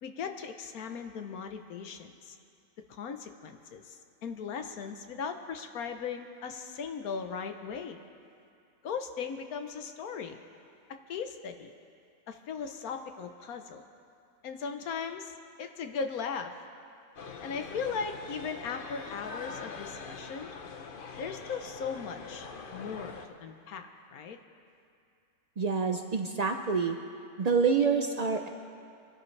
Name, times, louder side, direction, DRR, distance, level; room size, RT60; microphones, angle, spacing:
voice 1, 0.0-2.4 2.9-8.0 8.8-10.4 11.1-11.7 12.3-13.8 14.4-15.3 15.6-16.6 17.4-20.5 21.2-24.4, left 6 dB, 75° left, 6 dB, 1.3 m, -38 dB
sound 1, 17.2-23.3, left 4 dB, 45° left, 0.8 m, -43 dB
voice 2, 25.6-27.0 27.4-28.5, right 5 dB, 85° right, 5 dB, 0.3 m, -27 dB
24.5 x 11.5 x 3.3 m, 2.5 s
omnidirectional pair, 1.5 m